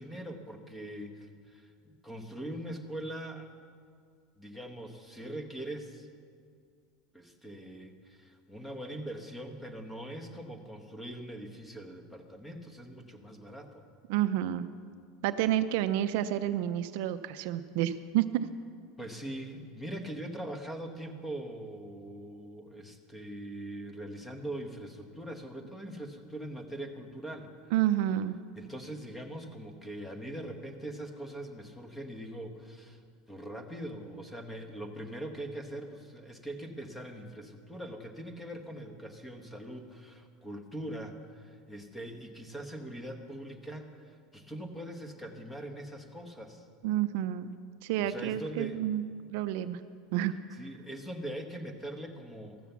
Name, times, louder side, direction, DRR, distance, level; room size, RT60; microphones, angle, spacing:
voice 1, 0.0-3.5 4.4-6.1 7.1-13.8 19.0-27.7 28.6-33.0 33.3-46.6 48.0-48.8 50.6-52.6, right 1 dB, 10° left, 5 dB, 1.1 m, -42 dB
voice 2, 14.1-14.7 15.2-18.5 27.7-28.4 46.8-47.5 47.8-49.0 49.3-49.8 50.1-50.3, right 12 dB, 65° right, 11 dB, 0.4 m, -29 dB
14.0 x 7.4 x 7.0 m, 2.1 s
supercardioid pair, 150°, 0 cm